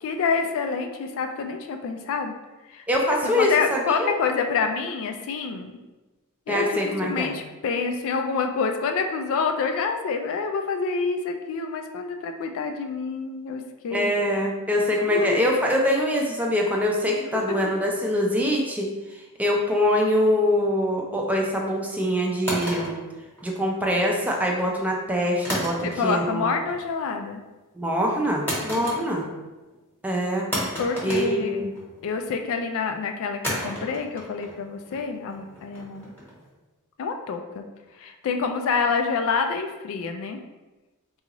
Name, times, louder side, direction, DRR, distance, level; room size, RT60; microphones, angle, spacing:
voice 1, 0.0-2.3 2.7-2.9 3.2-5.7 6.5-14.1 15.1-15.5 17.3-17.7 25.8-27.4 30.8-31.7 32.0-36.1 37.0-37.6 37.9-40.4, left 5 dB, 65° left, 5 dB, 0.3 m, -27 dB
voice 2, 2.9-4.1 6.5-7.3 13.9-18.9 19.4-22.9 23.4-26.5 27.8-29.2 30.0-30.5 31.0-31.7, equal, 5° right, -1 dB, 0.4 m, -24 dB
sound 1, 22.5-23.9 25.4-26.3 26.6-27.1 28.5-29.4 29.7-29.8 30.5-32.0 33.4-36.5, equal, 10° left, 1.0 m, -33 dB
3.8 x 2.4 x 2.9 m, 1.1 s
head